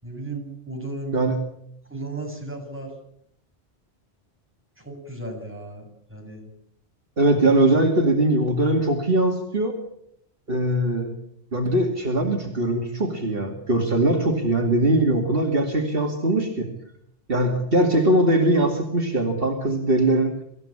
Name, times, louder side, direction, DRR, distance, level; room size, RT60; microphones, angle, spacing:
voice 1, 0.0-1.2 1.9-2.9 4.8-5.8 6.1-6.5, right 2 dB, 10° right, 1 dB, 7.5 m, -34 dB
voice 2, 7.2-9.8 10.5-11.1 11.5-16.7 17.3-20.3, right 1 dB, 60° right, 2 dB, 2.7 m, -21 dB
25.0 x 15.0 x 8.8 m, 0.72 s
omnidirectional pair, 1.1 m